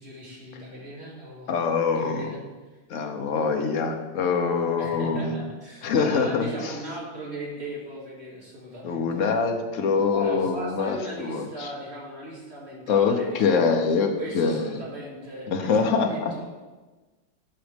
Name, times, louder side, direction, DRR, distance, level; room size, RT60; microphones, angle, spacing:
voice 1, 0.0-1.5 1.9-2.4 4.8-9.2 10.1-13.7 14.2-16.5, right 1 dB, 35° right, -6 dB, 2.6 m, -38 dB
voice 2, 1.5-2.3 2.9-5.4 5.8-6.7 8.8-11.7 12.9-14.1 14.3-14.8 15.5-16.3, left 5 dB, 55° left, 5 dB, 1.0 m, -24 dB
13.5 x 5.3 x 3.4 m, 1.2 s
omnidirectional pair, 2.1 m